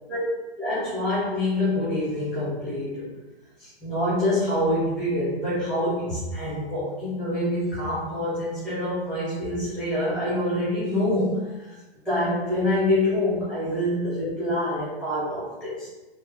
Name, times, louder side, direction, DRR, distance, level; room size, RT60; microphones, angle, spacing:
voice 1, 0.6-3.1 3.6-11.7 12.0-15.9, left 1 dB, ahead, -13 dB, 1.2 m, -26 dB
3.2 x 3.0 x 3.2 m, 1.1 s
figure-of-eight pair, 125°, 32 cm